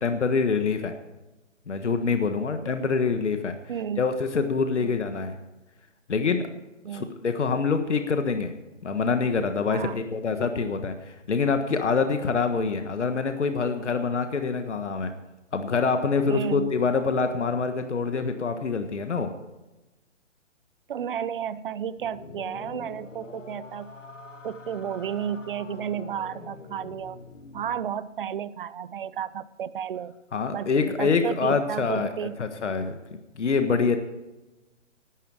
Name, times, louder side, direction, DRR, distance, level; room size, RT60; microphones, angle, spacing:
voice 1, 0.0-1.0 1.7-3.6 4.0-5.4 6.1-6.5 6.9-8.5 8.8-15.1 15.5-19.3 30.3-32.9 33.3-34.0, left 5 dB, 70° left, 7 dB, 1.5 m, -25 dB
voice 2, 3.7-4.0 4.8-4.9 6.8-7.1 9.7-10.0 16.3-16.7 20.9-23.9 24.4-27.2 27.5-30.2 30.5-32.4, right 8 dB, 45° right, 17 dB, 0.7 m, -32 dB
sound 1, 21.9-27.9, left 3 dB, 85° left, 1.9 m, -44 dB
16.0 x 12.0 x 4.9 m, 1.1 s
figure-of-eight pair, 145°, 37 cm